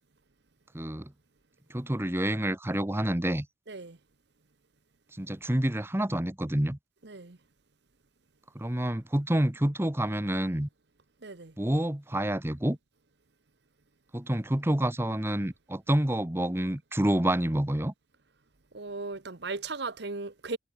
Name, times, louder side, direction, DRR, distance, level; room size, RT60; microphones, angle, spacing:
voice 1, 0.7-1.1 1.7-3.5 5.2-6.8 8.5-10.7 11.6-12.8 14.1-17.9, right 1 dB, 15° right, 1.0 m, -28 dB
voice 2, 3.7-4.0 7.0-7.4 11.2-11.5 18.7-20.6, right 3 dB, 65° right, 1.3 m, -37 dB
head